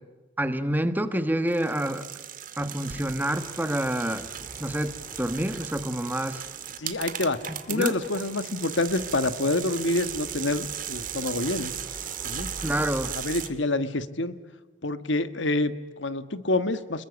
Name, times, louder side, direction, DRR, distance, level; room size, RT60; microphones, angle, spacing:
voice 1, 0.4-2.0 2.6-4.3 4.6-6.5 7.7-7.9 12.6-13.2, right 1 dB, 10° right, 10 dB, 1.3 m, -28 dB
sound 1, 1.5-13.5, right 9 dB, 45° right, 2.1 m, -37 dB
sound 2, 3.2-13.5, left 1 dB, 10° left, 2.7 m, -51 dB
voice 2, 6.8-7.4 7.7-11.7 12.2-12.5 13.1-14.4 14.8-17.0, left 2 dB, 70° left, 12 dB, 1.5 m, -27 dB
29.0 x 22.0 x 8.4 m, 1.2 s
head